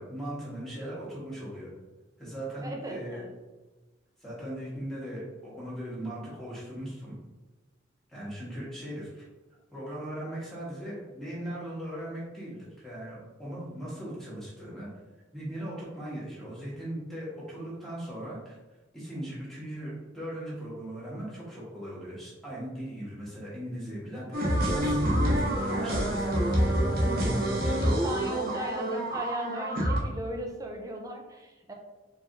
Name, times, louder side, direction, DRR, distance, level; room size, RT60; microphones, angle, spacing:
voice 1, 0.0-1.7 2.2-3.2 4.2-7.1 8.1-9.2 9.7-14.9 15.3-18.6 18.9-26.5 26.9-27.0 27.3-28.1, right 1 dB, ahead, -8 dB, 1.4 m, -39 dB
voice 2, 2.6-3.3 27.0-31.7, right 1 dB, 20° right, 1 dB, 0.5 m, -37 dB
sound 1, 24.3-30.0, equal, 50° right, 0.9 m, -27 dB
4.6 x 3.2 x 2.6 m, 1.2 s
head